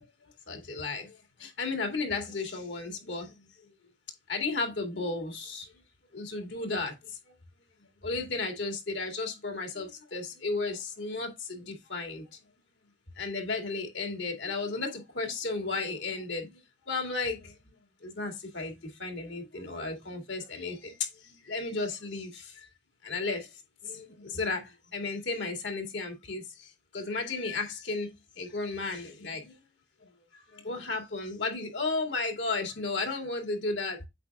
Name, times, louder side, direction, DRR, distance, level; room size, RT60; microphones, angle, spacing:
voice 1, 0.5-1.1 1.4-3.3 4.3-5.7 6.1-6.9 8.0-12.2 13.2-16.5 16.9-17.7 18.0-20.9 21.2-22.5 23.0-23.5 23.8-26.4 26.9-29.5 30.5-34.0, left 3 dB, 90° left, 2.2 m, -34 dB
8.3 x 5.7 x 2.3 m
head